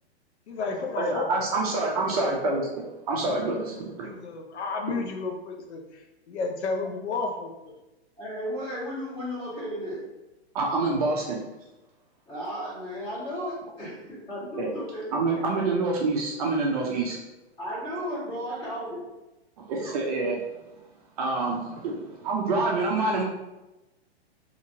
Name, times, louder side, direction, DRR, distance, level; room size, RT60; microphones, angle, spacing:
voice 1, 0.5-1.7 2.0-2.2 4.0-7.8, left 4 dB, 80° left, 3 dB, 0.6 m, -32 dB
voice 2, 1.0-2.7 3.1-4.1 10.5-11.4 14.6-14.7 15.1-17.2 19.7-20.4 21.2-23.2, right 3 dB, 35° right, -2 dB, 0.5 m, -26 dB
voice 3, 8.2-10.0 12.3-15.2 17.6-19.0, equal, 15° left, -9 dB, 1.5 m, -34 dB
2.8 x 2.7 x 2.6 m, 1.0 s
hypercardioid pair, 140°, 33 cm